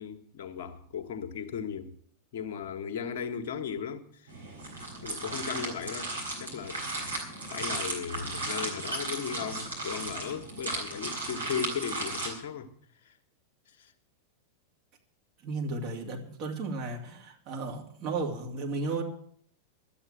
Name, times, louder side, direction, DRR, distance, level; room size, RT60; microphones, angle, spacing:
voice 1, 0.0-2.0 2.3-4.3 5.0-6.1 6.4-6.8 7.5-12.7 13.0-13.1 13.8-13.9, left 7 dB, 55° left, 8 dB, 1.4 m, -36 dB
sound 1, 4.3-12.3, right 2 dB, 80° right, 4.1 m, -35 dB
voice 2, 15.4-19.0, right 3 dB, 40° right, 0 dB, 2.8 m, -34 dB
12.5 x 8.7 x 7.5 m, 0.63 s
figure-of-eight pair, 90°, 0 cm